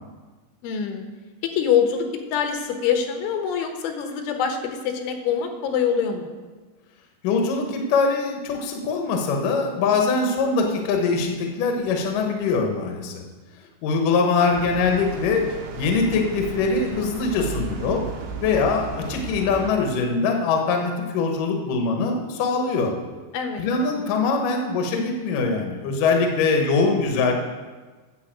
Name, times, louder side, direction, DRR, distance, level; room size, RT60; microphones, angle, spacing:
voice 1, 0.6-1.1 1.4-6.3 23.3-23.6, left 7 dB, 85° left, 5 dB, 3.5 m, -24 dB
voice 2, 7.2-13.2 13.8-15.4 15.7-18.0 18.4-22.9 23.6-27.3, left 4 dB, 65° left, 3 dB, 2.3 m, -22 dB
sound 1, 14.5-19.7, right 4 dB, 75° right, 2.4 m, -34 dB
9.7 x 6.8 x 7.5 m, 1.3 s
omnidirectional pair, 5.4 m